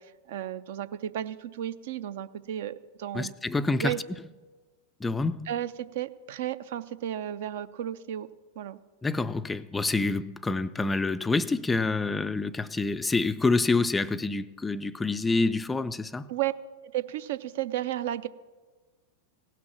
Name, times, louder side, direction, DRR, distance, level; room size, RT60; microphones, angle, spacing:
voice 1, 0.0-3.3 3.8-4.0 5.5-8.3 8.6-8.8 16.3-16.5 16.8-18.3, right 12 dB, 55° right, 0.4 m, -33 dB
voice 2, 3.1-4.0 5.0-5.5 9.0-16.3, left 3 dB, 10° left, 0.3 m, -27 dB
17.0 x 6.0 x 7.2 m
figure-of-eight pair, 90°, 0 cm